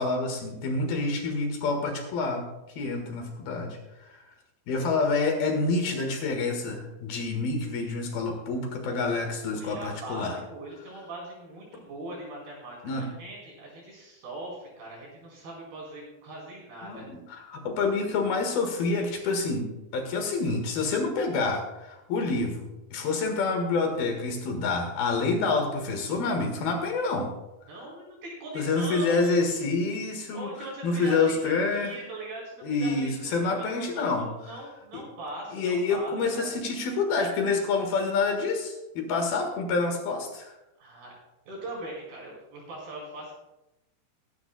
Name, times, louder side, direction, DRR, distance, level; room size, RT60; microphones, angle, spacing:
voice 1, 0.0-2.4 2.8-4.2 4.7-10.4 12.8-13.0 16.8-17.2 17.5-27.3 28.5-30.5 30.8-32.0 32.6-34.3 34.9-35.0 35.5-40.5, left 3 dB, 70° left, 3 dB, 3.3 m, -27 dB
voice 2, 9.5-17.1 27.7-29.4 30.3-36.5 40.8-41.1 41.5-43.3, right 2 dB, 65° right, -3 dB, 6.2 m, -41 dB
21.5 x 10.0 x 2.3 m, 0.95 s
omnidirectional pair, 4.7 m